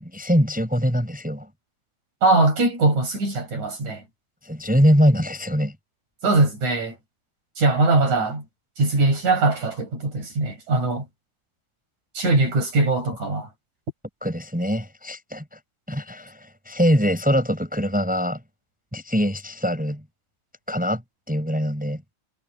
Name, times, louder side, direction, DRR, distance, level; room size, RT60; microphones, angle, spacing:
voice 1, 0.0-1.5 4.4-5.7 14.2-15.6 15.9-18.4 18.9-20.0 20.7-21.0 21.3-22.0, equal, 5° right, 6.6 m, -22 dB
voice 2, 2.2-4.0 6.2-7.0 7.6-8.4 8.8-11.1 12.1-13.5, right 2 dB, 75° right, 9.2 m, -21 dB
omnidirectional pair, 3.4 m